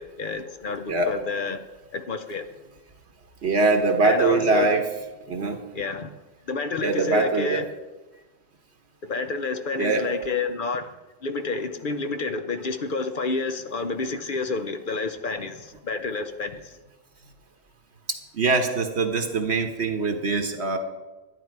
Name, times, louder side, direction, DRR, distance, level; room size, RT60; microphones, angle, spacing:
voice 1, 0.0-1.6 1.9-2.5 4.0-4.8 5.7-6.1 6.5-7.6 9.0-10.9 11.2-16.7, left 4 dB, 50° left, 8 dB, 0.9 m, -29 dB
voice 2, 3.4-4.9 5.3-5.6 6.8-7.6 9.8-10.1 18.1-20.8, right 3 dB, 70° right, 5 dB, 1.3 m, -23 dB
11.5 x 10.5 x 4.7 m, 1.1 s
omnidirectional pair, 1.2 m